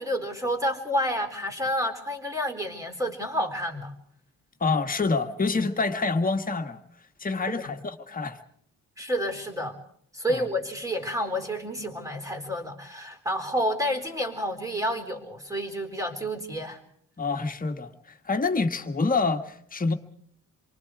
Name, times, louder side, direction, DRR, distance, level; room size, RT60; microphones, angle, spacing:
voice 1, 0.0-4.0 7.5-7.6 9.0-9.8 10.1-16.8, equal, 10° right, 4.1 m, -29 dB
voice 2, 4.6-6.8 7.2-8.4 10.3-10.4 17.2-19.9, left 4 dB, 25° left, 1.7 m, -27 dB
29.0 x 24.0 x 4.9 m
cardioid pair, 125°, 32 cm